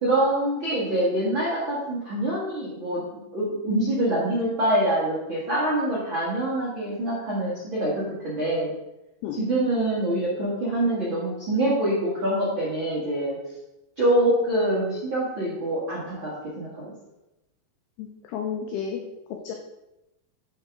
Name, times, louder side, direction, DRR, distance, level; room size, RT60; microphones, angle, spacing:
voice 1, 0.0-3.1 3.3-8.7 9.3-13.4 14.0-16.9, right 1 dB, 65° right, -9 dB, 1.2 m, -25 dB
voice 2, 18.0-19.0 19.4-19.5, left 7 dB, 85° left, 2 dB, 2.3 m, -31 dB
9.6 x 4.7 x 3.6 m, 0.95 s
omnidirectional pair, 5.5 m